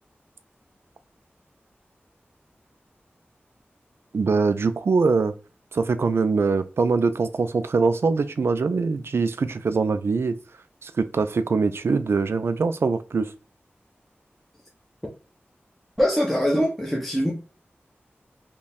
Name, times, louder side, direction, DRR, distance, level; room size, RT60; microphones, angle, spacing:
voice 1, 4.1-5.3 5.7-10.4 10.8-13.3, right 4 dB, 75° right, 0.4 m, -23 dB
voice 2, 16.0-17.3, equal, 5° left, 0.9 m, -22 dB
3.1 x 2.2 x 4.0 m
wide cardioid pair, 60°, 4 cm